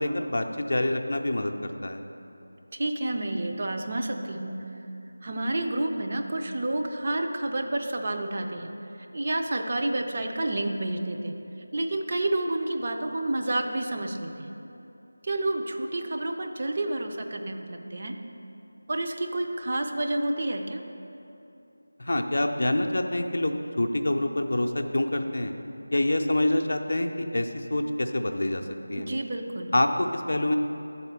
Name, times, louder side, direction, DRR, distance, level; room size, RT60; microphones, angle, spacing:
voice 1, 0.0-2.0 22.0-25.5 25.9-28.6 28.9-29.0 29.7-30.6, left 1 dB, 50° left, 5 dB, 0.4 m, -26 dB
voice 2, 2.7-4.6 5.2-8.7 9.1-11.3 11.7-14.5 15.2-18.2 18.9-20.8 29.0-29.7, right 1 dB, 35° right, 3 dB, 0.4 m, -29 dB
8.0 x 4.2 x 6.7 m, 2.9 s
figure-of-eight pair, 165°, 0 cm